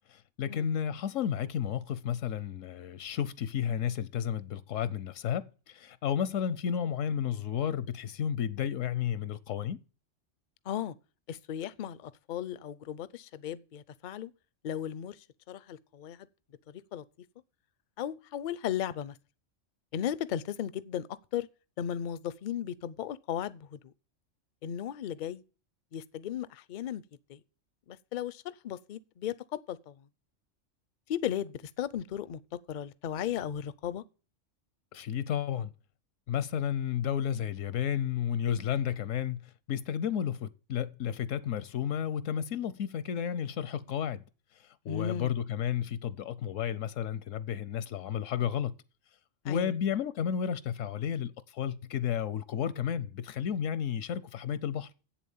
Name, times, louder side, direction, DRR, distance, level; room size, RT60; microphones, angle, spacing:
voice 1, 0.1-9.8 34.9-35.7 36.3-44.2 44.8-48.7 49.4-54.9, left 9 dB, 80° left, 1.0 m, -32 dB
voice 2, 11.3-14.3 14.6-16.3 16.7-17.0 18.0-19.2 19.9-21.1 21.3-21.5 21.8-23.9 24.6-25.4 25.9-27.0 27.3-27.4 27.9-30.1 31.1-32.4 32.7-34.0 44.9-45.3 49.4-49.8, left 10 dB, 55° left, 0.6 m, -36 dB
8.2 x 7.3 x 7.1 m
omnidirectional pair, 1.3 m